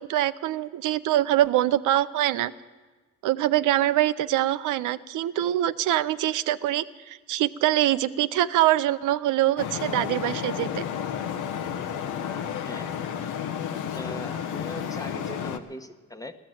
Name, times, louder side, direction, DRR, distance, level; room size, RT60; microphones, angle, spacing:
voice 1, 0.0-2.5 3.2-10.8, right 13 dB, 85° right, 13 dB, 0.6 m, -24 dB
Traffic noise roadway noise, 9.6-15.6, left 8 dB, 85° left, 1.1 m, -32 dB
voice 2, 12.7-13.4 14.0-16.3, left 1 dB, 10° left, 8 dB, 1.1 m, -40 dB
16.0 x 11.5 x 7.7 m, 1.3 s
cardioid pair, 90°, 30 cm